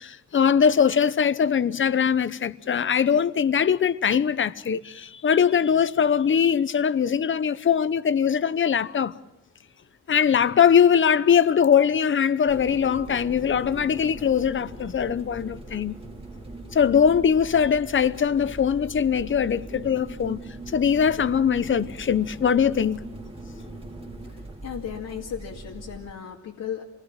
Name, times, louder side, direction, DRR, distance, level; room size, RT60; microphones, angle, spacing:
voice 1, 0.0-9.1 10.1-16.0 16.7-20.4 20.7-23.0, left 7 dB, 40° left, 0.8 m, -21 dB
sound 1, 12.5-26.1, right 2 dB, 15° right, 2.3 m, -41 dB
voice 2, 24.2-26.8, left 8 dB, 80° left, 2.4 m, -36 dB
27.5 x 19.5 x 7.5 m
wide cardioid pair, 135°, 32 cm